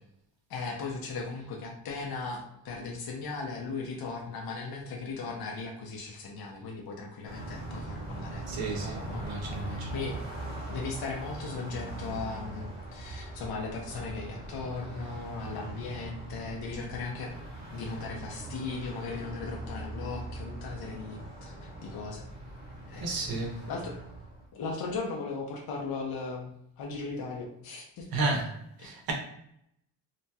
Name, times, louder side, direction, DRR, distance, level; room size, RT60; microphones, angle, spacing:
voice 1, 0.5-10.2 10.7-17.3 17.7-22.3 22.9-24.0 24.5-28.1 28.8-28.9, left 4 dB, 55° left, -1 dB, 0.6 m, -38 dB
Car passing by, 7.2-24.5, right 1 dB, 15° right, 0.9 m, -41 dB
voice 2, 8.5-9.9 23.0-23.6 28.1-28.5 28.8-29.1, right 3 dB, 55° right, 1 dB, 0.8 m, -32 dB
2.9 x 2.7 x 2.2 m, 0.75 s
wide cardioid pair, 175°, 44 cm